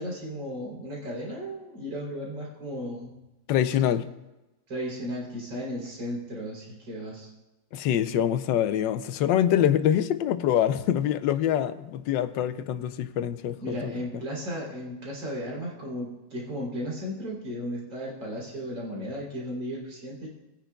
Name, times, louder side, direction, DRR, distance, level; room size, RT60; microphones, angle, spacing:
voice 1, 0.0-3.1 4.7-7.3 13.6-20.3, equal, 90° right, -4 dB, 4.1 m, -35 dB
voice 2, 3.5-4.1 7.7-13.9, left 10 dB, 80° left, 12 dB, 1.3 m, -25 dB
19.5 x 10.0 x 2.3 m, 1.0 s
omnidirectional pair, 2.0 m